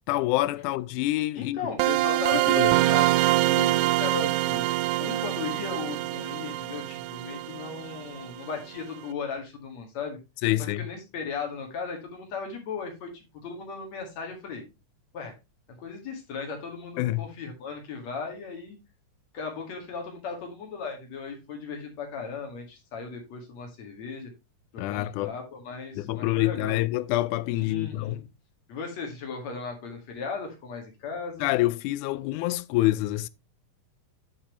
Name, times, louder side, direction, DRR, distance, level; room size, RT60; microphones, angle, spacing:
voice 1, 0.1-1.7 2.3-2.7 10.4-10.9 17.0-17.3 24.8-25.3 26.0-28.3 31.4-33.3, left 17 dB, 85° left, 2.0 m, -27 dB
voice 2, 1.3-4.7 5.0-10.2 10.8-14.7 15.1-15.3 15.8-18.8 19.3-24.3 24.9-26.8 27.6-28.2 28.7-31.5, left 5 dB, 60° left, 3.2 m, -37 dB
sound 1, 1.8-8.5, right 17 dB, 80° right, 1.9 m, -25 dB
9.4 x 7.2 x 3.1 m
omnidirectional pair, 3.6 m